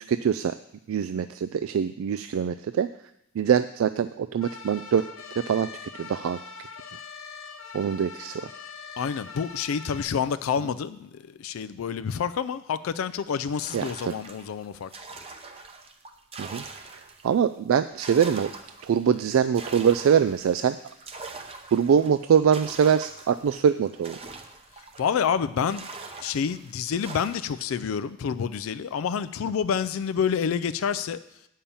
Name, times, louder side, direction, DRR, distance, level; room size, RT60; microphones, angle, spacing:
voice 1, 0.1-0.5 0.9-2.9 3.4-5.0 5.3-6.4 7.7-8.5 13.7-14.1 16.4-16.6 17.2-18.5 18.8-20.8 21.7-24.2, right 7 dB, 75° right, 11 dB, 0.3 m, -23 dB
sound 1, 4.4-10.0, left 5 dB, 70° left, 1.0 m, -42 dB
voice 2, 9.0-14.9 25.0-25.8 26.2-31.2, left 7 dB, 90° left, 12 dB, 0.4 m, -28 dB
sound 2, 13.5-17.4 17.8-25.3 25.7-27.6, right 3 dB, 30° right, 0.7 m, -43 dB
8.7 x 5.6 x 7.0 m, 0.81 s
head